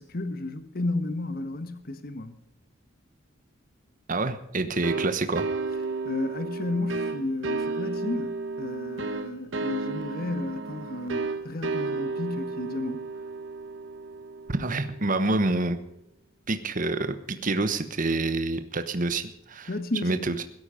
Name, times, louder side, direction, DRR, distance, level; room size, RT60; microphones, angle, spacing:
voice 1, 0.0-2.4 6.0-13.0 19.7-20.4, left 2 dB, 50° left, 1.3 m, -32 dB
voice 2, 4.1-5.5 14.5-15.8 16.5-17.1 17.4-19.7 20.0-20.4, right 2 dB, 40° right, 1.1 m, -27 dB
sound 1, 4.8-15.3, right 3 dB, 65° right, 1.1 m, -33 dB
17.0 x 13.0 x 5.1 m
head